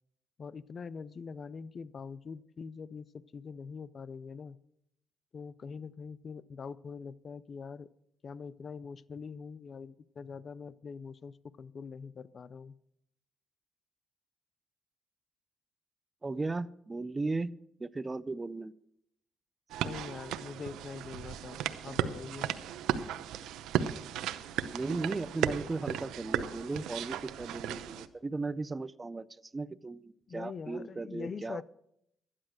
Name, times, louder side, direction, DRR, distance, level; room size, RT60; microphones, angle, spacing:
voice 1, 0.4-4.6 5.3-7.9 8.2-12.7 19.8-22.5 30.3-31.6, left 5 dB, 45° left, 17 dB, 0.4 m, -43 dB
voice 2, 16.2-17.5 17.8-18.7 24.7-29.3 29.5-31.6, right 3 dB, 25° right, 18 dB, 0.4 m, -36 dB
sound 1, 19.7-28.1, right 10 dB, 90° right, 0.7 m, -35 dB
12.5 x 10.0 x 6.4 m, 0.77 s
cardioid pair, 90°, 0 cm